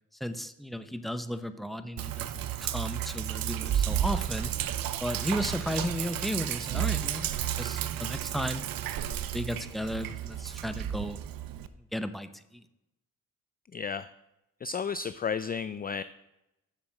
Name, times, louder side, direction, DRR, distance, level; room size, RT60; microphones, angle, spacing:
voice 1, 0.2-4.5 5.0-8.6 9.1-11.2 11.9-12.6, equal, ahead, 10 dB, 0.7 m, -34 dB
Sink (filling or washing), 2.0-11.7, right 11 dB, 85° right, 0.7 m, -32 dB
voice 2, 13.7-14.1 14.6-16.0, left 6 dB, 30° left, 14 dB, 0.3 m, -32 dB
7.3 x 7.0 x 7.6 m, 0.90 s
cardioid pair, 80°, 33 cm